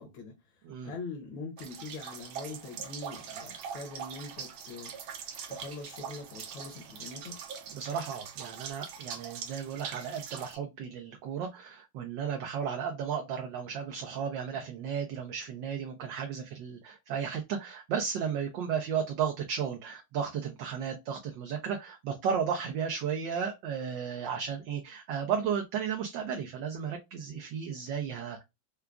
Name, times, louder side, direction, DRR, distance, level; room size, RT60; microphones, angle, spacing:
voice 1, 0.0-4.9 5.5-7.4, left 3 dB, 80° left, 1.6 m, -43 dB
sound 1, 1.6-10.6, right 7 dB, 85° right, 1.6 m, -42 dB
voice 2, 7.7-28.4, right 7 dB, 70° right, 1.3 m, -34 dB
4.8 x 2.3 x 2.2 m
omnidirectional pair, 2.2 m